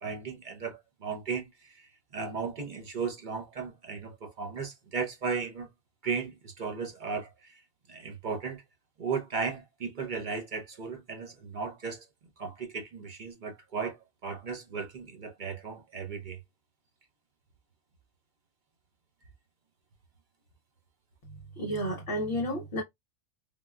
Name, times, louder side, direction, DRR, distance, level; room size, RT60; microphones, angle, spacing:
voice 1, 0.0-5.7 6.0-7.6 7.9-8.6 9.0-12.0 12.4-14.0 14.2-16.4, right 5 dB, 50° right, 0.6 m, -36 dB
voice 2, 21.5-22.8, equal, 50° left, 0.9 m, -31 dB
3.5 x 2.2 x 2.2 m
omnidirectional pair, 1.5 m